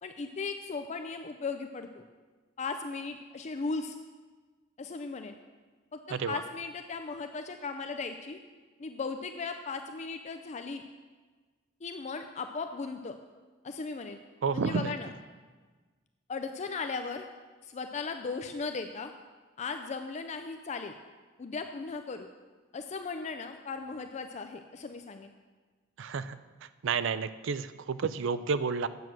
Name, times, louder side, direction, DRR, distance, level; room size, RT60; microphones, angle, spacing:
voice 1, 0.0-2.0 2.6-4.0 4.8-5.3 5.9-8.4 8.8-10.8 11.8-13.2 13.6-14.2 14.5-15.1 16.3-17.3 17.6-19.1 19.6-21.0 21.4-22.3 22.7-25.3, left 4 dB, 35° left, 7 dB, 0.4 m, -37 dB
voice 2, 14.4-14.9 26.0-26.4 26.8-28.9, right 5 dB, 65° right, 13 dB, 0.5 m, -30 dB
9.4 x 7.7 x 6.0 m, 1.4 s
head